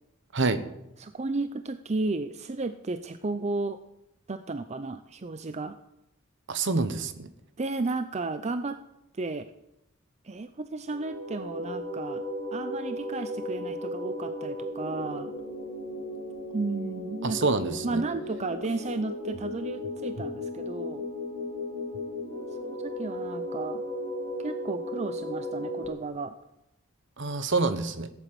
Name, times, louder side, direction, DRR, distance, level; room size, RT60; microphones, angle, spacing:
voice 1, 1.0-3.8 4.3-5.8 7.6-8.8 9.2-9.5 10.2-12.2 12.5-15.3 16.5-17.5 17.8-21.1 22.6-23.8 24.4-26.3, right 3 dB, 30° right, 10 dB, 0.5 m, -33 dB
voice 2, 6.5-7.3 17.2-18.0 27.2-28.1, right 3 dB, 60° right, 12 dB, 1.1 m, -27 dB
sound 1, 10.9-25.9, left 1 dB, 85° right, 5.8 m, -35 dB
16.0 x 8.3 x 7.6 m, 0.85 s
head